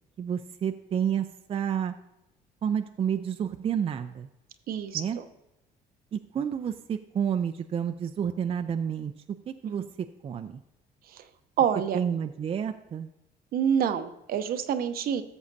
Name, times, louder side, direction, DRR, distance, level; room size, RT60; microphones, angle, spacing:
voice 1, 0.2-1.9 2.6-4.3 4.9-5.2 6.1-9.1 9.5-10.6 11.9-13.1, right 8 dB, 35° right, 8 dB, 0.4 m, -30 dB
voice 2, 4.7-5.3 9.6-9.9 11.1-11.2 11.6-12.0 13.5-15.2, right 8 dB, 60° right, 10 dB, 0.7 m, -27 dB
13.5 x 7.1 x 2.7 m, 0.92 s
cardioid pair, 110°, 17 cm